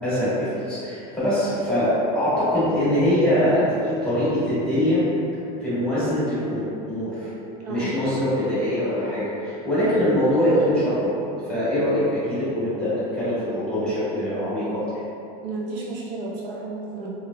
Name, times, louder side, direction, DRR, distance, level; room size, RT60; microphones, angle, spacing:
voice 1, 0.0-5.0 5.6-7.3 7.7-11.1 11.5-14.8, equal, 5° left, -14 dB, 1.3 m, -23 dB
voice 2, 7.6-8.0 9.8-10.2 15.4-17.1, right 2 dB, 80° right, -4 dB, 0.8 m, -32 dB
3.3 x 3.1 x 2.2 m, 2.8 s
supercardioid pair, 165°, 21 cm